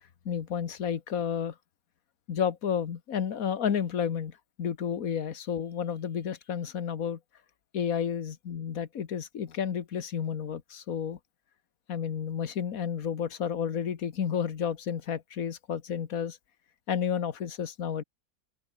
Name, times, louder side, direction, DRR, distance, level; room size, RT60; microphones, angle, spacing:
voice 1, 0.3-1.6 2.3-7.2 7.7-11.2 11.9-16.4 16.9-18.0, left 8 dB, 70° left, 1.7 m, -31 dB
open air
omnidirectional pair, 1.6 m